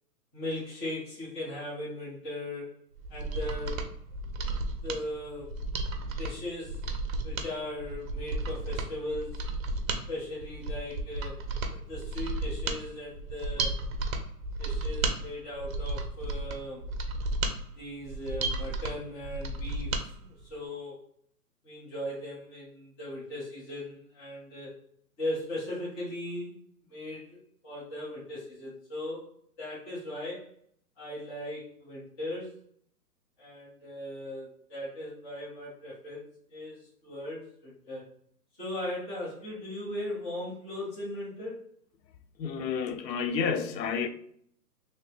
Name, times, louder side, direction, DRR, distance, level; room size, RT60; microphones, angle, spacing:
voice 1, 0.3-2.8 3.1-3.9 4.2-4.3 4.8-5.5 6.2-6.9 7.2-9.4 10.1-11.4 11.9-13.8 14.6-16.8 17.7-21.0 21.6-24.7 25.2-26.6 26.9-27.4 27.6-29.3 29.6-30.5 31.0-32.6 33.4-36.2 36.5-38.1 38.6-41.6, left 1 dB, 15° left, 0.9 m, -38 dB
Mechanisms, 3.0-20.1 20.4-20.5, right 2 dB, 55° right, 0.6 m, -33 dB
voice 2, 42.4-44.1, left 6 dB, 85° left, 0.6 m, -30 dB
3.0 x 2.9 x 3.1 m
hypercardioid pair, 155°, 49 cm